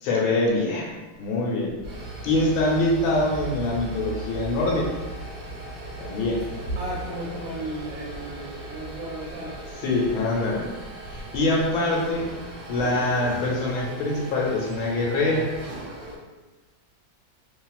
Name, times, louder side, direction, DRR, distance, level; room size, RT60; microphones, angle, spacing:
voice 1, 0.0-0.9 1.2-1.7 2.2-4.9 6.0-6.4 9.8-10.7 11.1-12.2 12.7-15.4, left 2 dB, 85° left, -2 dB, 1.4 m, -24 dB
sound 1, 1.8-16.2, right 2 dB, 55° right, 1.2 m, -38 dB
voice 2, 6.7-9.6, right 1 dB, 75° right, -5 dB, 1.3 m, -34 dB
3.0 x 2.7 x 2.3 m, 1.2 s
omnidirectional pair, 2.1 m